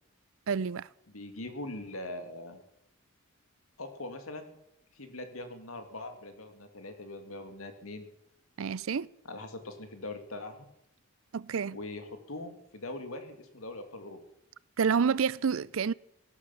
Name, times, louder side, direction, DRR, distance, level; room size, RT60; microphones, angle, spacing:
voice 1, 0.5-0.9 8.6-9.1 11.3-11.8 14.8-15.9, right 6 dB, 75° right, 0.5 m, -28 dB
voice 2, 1.1-2.6 3.8-4.5 4.9-8.1 9.3-10.7 11.7-14.2, left 2 dB, 80° left, 2.4 m, -42 dB
17.5 x 10.0 x 7.2 m
head